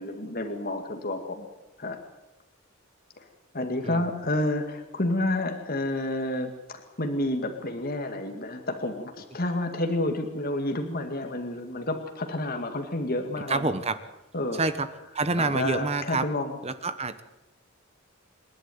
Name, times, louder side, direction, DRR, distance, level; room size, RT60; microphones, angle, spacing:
voice 1, 0.0-1.5 1.8-2.0 3.5-13.7 14.3-14.6 15.4-16.5, left 1 dB, 45° left, 5 dB, 2.1 m, -30 dB
voice 2, 13.5-14.0 14.5-14.9 15.1-16.3 16.6-17.2, right 3 dB, 30° right, 11 dB, 1.1 m, -27 dB
27.5 x 12.0 x 9.4 m, 0.97 s
head